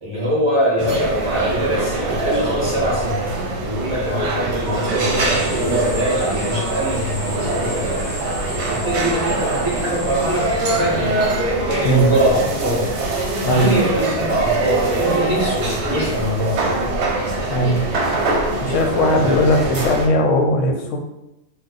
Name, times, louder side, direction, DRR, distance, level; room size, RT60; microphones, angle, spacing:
voice 1, 0.0-8.0 8.7-11.2 11.7-12.9 13.5-17.1 19.1-19.3, right 1 dB, 25° right, -9 dB, 0.8 m, -23 dB
sound 1, 0.8-20.1, right 2 dB, 65° right, 0.9 m, -23 dB
sound 2, 4.5-11.1, equal, 45° left, 0.9 m, -36 dB
voice 2, 13.4-13.8 17.5-17.9 18.6-21.0, left 1 dB, 75° left, 3 dB, 0.9 m, -18 dB
2.5 x 2.3 x 3.8 m, 0.93 s
omnidirectional pair, 1.3 m